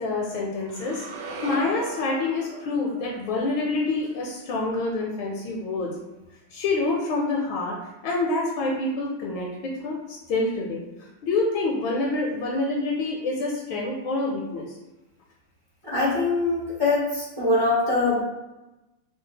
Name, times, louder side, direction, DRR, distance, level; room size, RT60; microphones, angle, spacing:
voice 1, 0.0-5.9 6.5-7.8 8.0-10.8 11.2-14.8, left 3 dB, 75° left, -2 dB, 1.3 m, -27 dB
sound 1, 0.7-4.9, right 3 dB, 75° right, 1.0 m, -40 dB
voice 2, 15.8-18.2, left 2 dB, 20° right, -9 dB, 0.7 m, -23 dB
3.3 x 2.3 x 3.8 m, 1.0 s
omnidirectional pair, 2.4 m